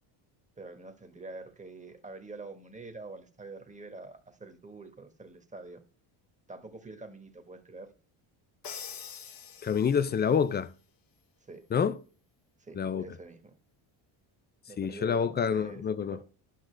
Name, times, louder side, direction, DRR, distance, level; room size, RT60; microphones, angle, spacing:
voice 1, 0.6-5.8 6.5-7.9 11.5-11.7 12.6-13.6 14.7-16.3, right 3 dB, 15° right, 1.3 m, -46 dB
Crash cymbal, 8.6-10.3, left 7 dB, 45° left, 1.1 m, -44 dB
voice 2, 9.6-10.7 11.7-12.0 12.8-13.0 14.8-16.2, left 7 dB, 25° left, 0.3 m, -27 dB
12.0 x 6.0 x 3.3 m
cardioid pair, 95°, 49 cm